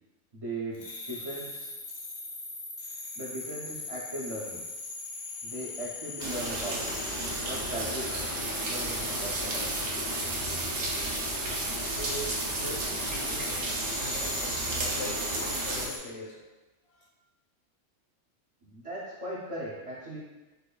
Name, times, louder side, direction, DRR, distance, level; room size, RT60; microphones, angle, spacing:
voice 1, 0.3-1.7 3.2-4.6 5.4-6.9 7.4-8.3 8.7-9.7 18.6-20.2, right 1 dB, 60° right, -6 dB, 0.3 m, -38 dB
sound 1, 0.7-16.0, left 3 dB, 90° left, 1.1 m, -39 dB
sound 2, 6.2-15.9, right 2 dB, 80° right, 1.0 m, -32 dB
voice 2, 12.0-13.7 14.0-16.4 16.9-17.1, left 1 dB, 65° left, -1 dB, 0.8 m, -41 dB
5.2 x 2.3 x 2.2 m, 1.1 s
omnidirectional pair, 1.3 m